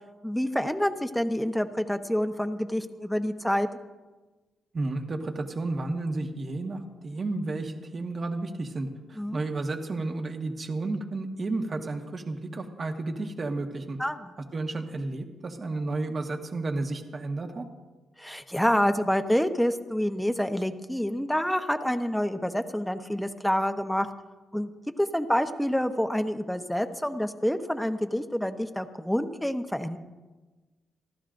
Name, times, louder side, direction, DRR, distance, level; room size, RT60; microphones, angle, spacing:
voice 1, 0.2-3.7 9.2-9.4 14.0-14.2 18.2-24.1 24.5-24.7 25.0-30.0, equal, ahead, 7 dB, 0.9 m, -27 dB
voice 2, 4.7-14.0 14.5-17.6, right 2 dB, 40° right, 4 dB, 1.5 m, -32 dB
28.0 x 12.5 x 2.6 m, 1.2 s
cardioid pair, 90°, 0 cm